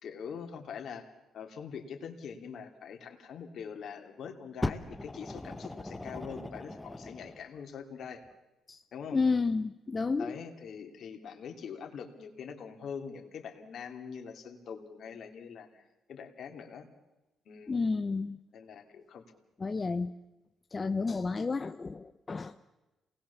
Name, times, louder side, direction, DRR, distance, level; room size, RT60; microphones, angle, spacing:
voice 1, 0.0-8.2 8.9-9.2 10.2-15.8 16.1-16.9 17.5-17.7 18.5-19.2, left 6 dB, 65° left, 4 dB, 3.0 m, -43 dB
Fire, 4.6-7.4 8.3-8.4, left 2 dB, 10° left, 1.2 m, -38 dB
voice 2, 9.1-10.4 17.7-18.4 19.6-20.1 20.7-22.5, left 4 dB, 30° left, 8 dB, 0.7 m, -31 dB
28.0 x 19.5 x 7.2 m, 1.0 s
cardioid pair, 90°, 0 cm